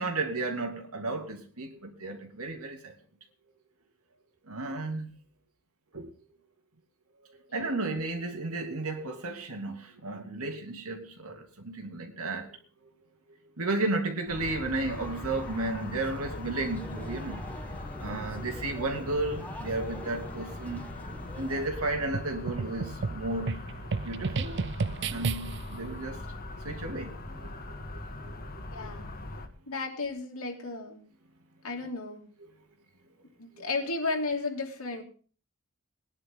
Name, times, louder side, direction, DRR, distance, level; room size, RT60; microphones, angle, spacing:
voice 1, 0.0-2.9 4.5-5.2 5.9-6.1 7.5-12.5 13.6-17.4 18.0-20.8 21.4-23.6 24.0-24.6 25.1-26.2 26.6-27.6 27.9-28.3 28.8-28.9 33.6-33.7, right 2 dB, 80° right, 2.7 m, -33 dB
voice 2, 7.5-7.9 28.7-29.1 29.7-31.0 31.6-32.3 33.4-35.0, left 3 dB, 80° left, 2.9 m, -34 dB
sound 1, 14.3-29.5, left 2 dB, 45° left, 1.8 m, -41 dB
sound 2, 14.9-21.7, equal, 10° left, 1.7 m, -44 dB
sound 3, 22.1-25.8, right 4 dB, 55° right, 0.6 m, -33 dB
20.0 x 10.5 x 3.8 m
head